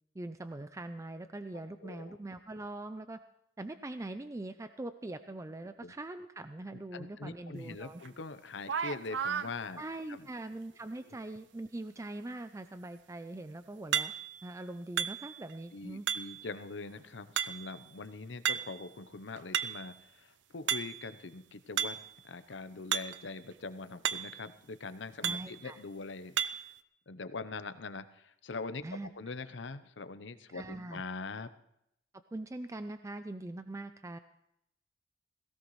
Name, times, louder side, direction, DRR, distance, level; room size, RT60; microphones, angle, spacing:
voice 1, 0.2-3.2 3.6-8.0 9.8-14.1 14.4-16.1 25.2-25.8 28.8-29.1 30.5-31.0 32.3-34.2, right 2 dB, 15° right, 10 dB, 0.4 m, -42 dB
voice 2, 1.8-2.2 5.8-5.9 6.9-9.8 10.1-10.2 15.7-26.6 27.1-28.8 29.2-31.5, left 3 dB, 80° left, 12 dB, 0.8 m, -43 dB
sound 1, 8.0-8.1 8.6-9.5 13.9-14.5 15.0-15.5 16.1-16.5 17.4-17.8 18.5-18.9 19.3-19.9 20.7-21.1 21.8-22.1 22.9-23.2 23.5-23.6 24.1-24.5 25.2-25.6 26.4-26.7, right 8 dB, 80° right, 0.6 m, -33 dB
17.0 x 17.0 x 3.2 m, 0.78 s
head